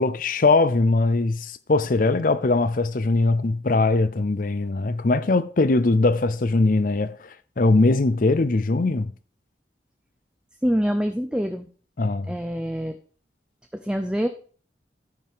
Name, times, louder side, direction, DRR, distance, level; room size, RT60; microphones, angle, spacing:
voice 1, 0.0-9.1 12.0-12.3, left 3 dB, 50° left, 0.6 m, -21 dB
voice 2, 10.6-11.7 12.3-13.0 13.7-14.3, equal, 5° right, 0.6 m, -25 dB
14.0 x 6.0 x 3.6 m
head